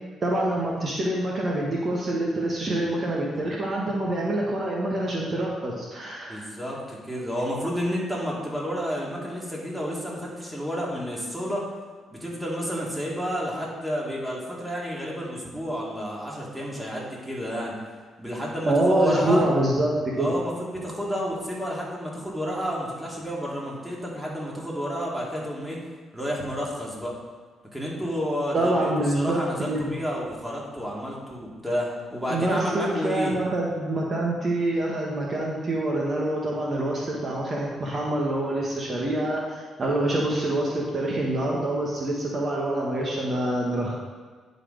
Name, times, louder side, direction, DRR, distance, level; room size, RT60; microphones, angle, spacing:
voice 1, 0.2-6.5 18.6-20.3 28.5-29.9 32.3-43.9, right 1 dB, 40° right, -2 dB, 1.2 m, -26 dB
voice 2, 6.3-11.7 12.1-17.8 18.2-19.5 20.2-25.8 26.1-27.2 27.7-28.9 29.1-33.4, equal, 5° right, -4 dB, 2.2 m, -30 dB
9.8 x 4.1 x 5.0 m, 1.5 s
cardioid pair, 90°, 0 cm